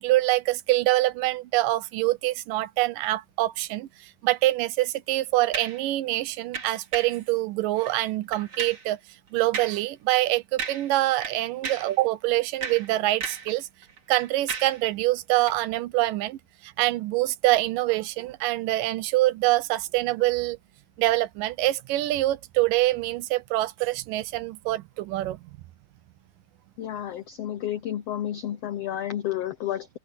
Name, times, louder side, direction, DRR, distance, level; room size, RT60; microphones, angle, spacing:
voice 1, 0.0-3.9 4.2-9.0 9.3-13.7 14.1-20.6 21.0-25.4, right 17 dB, 80° right, 2.4 m, -25 dB
sound 1, 5.5-5.8 6.5-7.2 7.8-8.0 8.3-8.9 9.5-9.8 10.1-10.3 10.6-11.0 11.2-12.0 12.4-13.6 13.8-14.8 15.4-15.6, right 6 dB, 40° right, 3.7 m, -35 dB
voice 2, 26.8-29.9, left 11 dB, 90° left, 1.3 m, -31 dB
open air
omnidirectional pair, 3.9 m